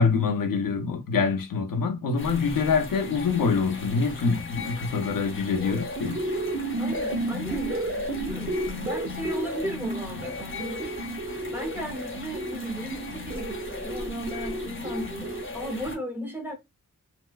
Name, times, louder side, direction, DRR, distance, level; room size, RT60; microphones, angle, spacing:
voice 1, 0.0-6.2, left 5 dB, 85° left, 0.7 m, -25 dB
sound 1, 2.2-16.0, left 3 dB, 40° left, 0.8 m, -39 dB
sound 2, 5.4-15.9, right 1 dB, 40° right, 0.7 m, -33 dB
voice 2, 6.8-16.5, equal, 5° right, 0.7 m, -36 dB
4.2 x 2.1 x 2.3 m
wide cardioid pair, 175°, 33 cm